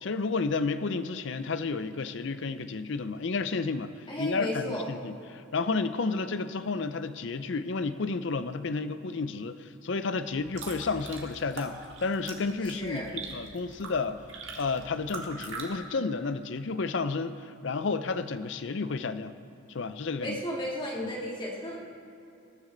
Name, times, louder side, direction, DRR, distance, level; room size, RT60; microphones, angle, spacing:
voice 1, 0.0-3.9 4.2-14.2 14.6-17.4 17.6-19.4 19.7-20.4, left 4 dB, 60° left, 12 dB, 0.5 m, -31 dB
voice 2, 4.1-4.9 12.6-13.1 20.2-21.8, equal, 25° left, -3 dB, 2.2 m, -34 dB
sound 1, 10.3-15.7, right 3 dB, 65° right, 1.9 m, -42 dB
21.5 x 10.5 x 3.9 m, 2.6 s
head